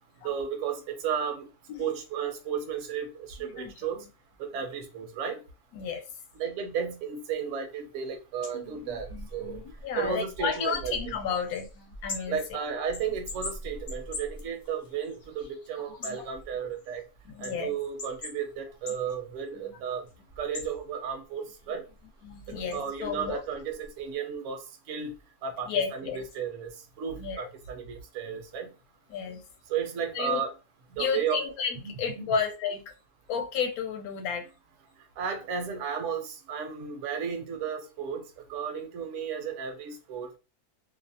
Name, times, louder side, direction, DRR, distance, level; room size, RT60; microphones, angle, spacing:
voice 1, 0.2-1.5 1.8-4.0 4.4-5.4 6.4-9.6 9.9-10.9 12.3-17.0 17.4-20.0 20.4-21.8 22.7-24.6 24.9-25.1 25.4-26.7 27.0-28.7 29.7-30.5 30.9-31.4 31.8-32.3 35.2-38.2 38.5-40.4, right 7 dB, 65° right, 0.8 m, -33 dB
voice 2, 3.4-3.7 5.7-6.0 8.5-12.4 16.0-16.3 17.2-17.8 19.6-19.8 22.2-23.4 25.6-26.3 27.2-27.5 29.1-29.4 30.1-30.4 31.0-32.9 33.3-34.5, left 6 dB, 80° left, 1.1 m, -32 dB
sound 1, 7.3-7.5 7.7-24.1, left 2 dB, 55° left, 0.6 m, -44 dB
2.6 x 2.0 x 2.6 m
omnidirectional pair, 1.6 m